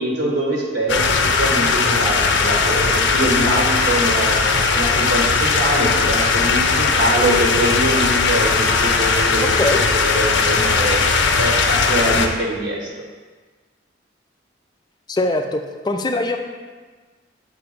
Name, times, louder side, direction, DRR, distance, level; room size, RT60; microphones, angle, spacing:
voice 1, 0.0-4.4 4.7-9.6 9.9-11.0 11.4-12.9, right 1 dB, 75° right, -2 dB, 1.2 m, -23 dB
sound 1, 0.9-12.3, left 4 dB, 85° left, 0.5 m, -18 dB
voice 2, 15.1-16.4, left 2 dB, 25° left, 5 dB, 0.4 m, -22 dB
6.7 x 3.0 x 5.0 m, 1.4 s
head